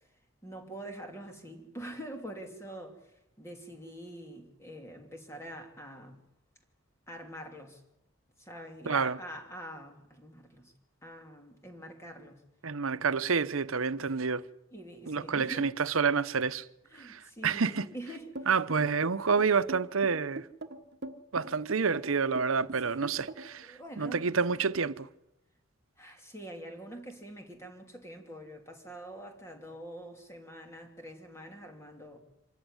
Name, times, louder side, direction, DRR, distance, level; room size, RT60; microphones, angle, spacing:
voice 1, 0.4-6.2 7.1-7.8 8.4-10.7 11.0-12.4 14.7-15.7 16.9-18.3 22.8-24.3 26.0-32.2, right 1 dB, 15° left, 2.8 m, -45 dB
voice 2, 8.8-9.2 12.6-14.4 15.1-16.7 17.0-17.9 18.5-20.5 21.3-25.1, right 5 dB, 80° right, 0.8 m, -29 dB
sound 1, 18.4-23.6, right 1 dB, 50° right, 1.2 m, -41 dB
25.0 x 14.5 x 9.8 m
head